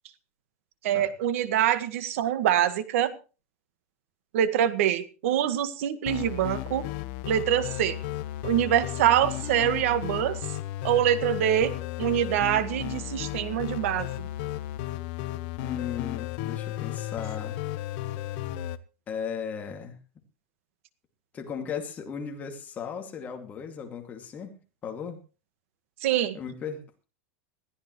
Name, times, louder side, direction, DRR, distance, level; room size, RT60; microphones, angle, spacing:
voice 1, 0.8-3.1 4.3-6.8 7.3-8.0 8.4-10.4 10.8-11.7 12.0-14.3 26.0-26.4, right 10 dB, 65° right, 12 dB, 1.7 m, -25 dB
sound 1, 6.1-18.8, left 15 dB, 50° left, 1.0 m, -34 dB
voice 2, 15.6-17.6 19.1-20.0 21.3-24.6 24.8-25.2 26.3-26.8, left 7 dB, 20° left, 3 dB, 2.4 m, -36 dB
21.0 x 14.5 x 3.2 m, 0.35 s
supercardioid pair, 165°, 8 cm